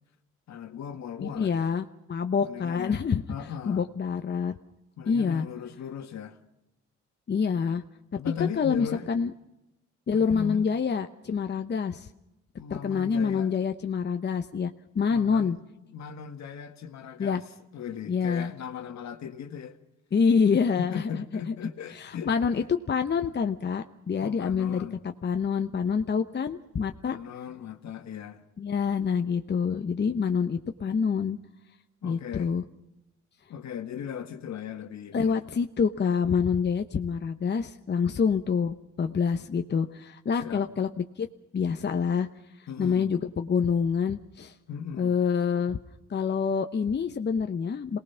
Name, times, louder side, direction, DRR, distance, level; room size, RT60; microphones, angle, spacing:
voice 1, 0.5-1.6 2.4-3.0 3.3-3.8 5.0-6.4 8.1-9.1 10.1-10.6 12.6-13.5 15.1-15.6 15.9-17.4 17.7-19.8 20.8-22.7 24.2-25.0 27.0-28.4 32.0-32.5 33.5-35.4 40.4-40.7 42.7-43.1 44.7-45.1, left 8 dB, 65° left, 1.9 m, -38 dB
voice 2, 1.2-3.2 3.7-4.5 5.1-5.5 7.3-7.8 8.4-9.3 10.1-12.1 12.7-15.6 17.2-17.4 18.1-18.5 20.1-21.5 21.9-24.9 25.2-27.2 28.6-31.4 32.0-32.6 35.1-40.9 41.2-41.3 41.5-42.3 42.6-44.5 45.0-45.8 46.1-48.0, left 6 dB, 35° left, 1.0 m, -27 dB
27.5 x 19.0 x 5.7 m
cardioid pair, 90°, 30 cm